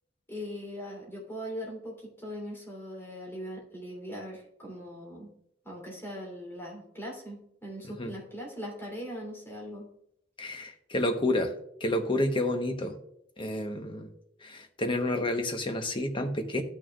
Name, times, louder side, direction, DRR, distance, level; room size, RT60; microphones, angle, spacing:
voice 1, 0.3-5.3 5.6-9.9, equal, 15° left, -3 dB, 2.9 m, -40 dB
voice 2, 10.4-11.5 11.8-13.0 13.4-14.1 14.4-16.6, left 1 dB, 30° left, 5 dB, 0.9 m, -29 dB
14.0 x 6.3 x 2.3 m, 0.74 s
head